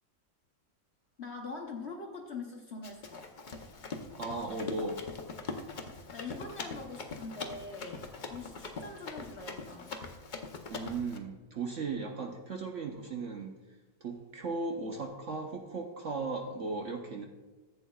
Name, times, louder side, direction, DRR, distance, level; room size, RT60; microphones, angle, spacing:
voice 1, 1.2-3.2 6.1-9.9, left 3 dB, 50° left, 0 dB, 0.9 m, -43 dB
Run, 2.8-11.2, left 4 dB, 65° left, 0.4 m, -42 dB
voice 2, 4.1-5.0 10.7-13.5 14.0-17.3, right 3 dB, 55° right, 1 dB, 0.9 m, -36 dB
14.5 x 8.3 x 2.3 m, 1.3 s
omnidirectional pair, 1.9 m